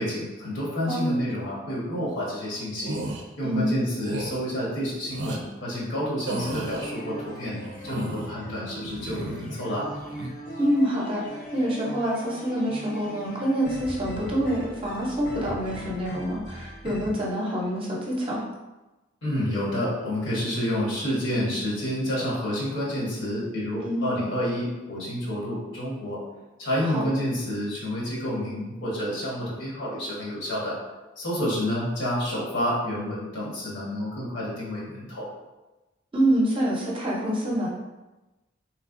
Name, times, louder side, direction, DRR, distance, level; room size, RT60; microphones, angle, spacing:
voice 1, 0.0-3.0 3.4-7.6 7.8-9.9 19.2-26.2 26.6-30.8 31.2-35.3, equal, 70° left, -6 dB, 1.3 m, -29 dB
sound 1, 2.8-3.2 4.0-4.4 5.1-5.4 6.3-6.9 7.6-8.3 8.9-9.6 9.9-10.3, right 2 dB, 65° right, 0.5 m, -34 dB
sound 2, 6.3-17.1, equal, 45° left, 0.7 m, -40 dB
voice 2, 10.6-11.2 11.5-18.4 23.8-24.1 26.8-27.1 36.1-37.7, right 1 dB, 30° right, -4 dB, 0.7 m, -26 dB
3.5 x 3.2 x 2.5 m, 1.1 s
head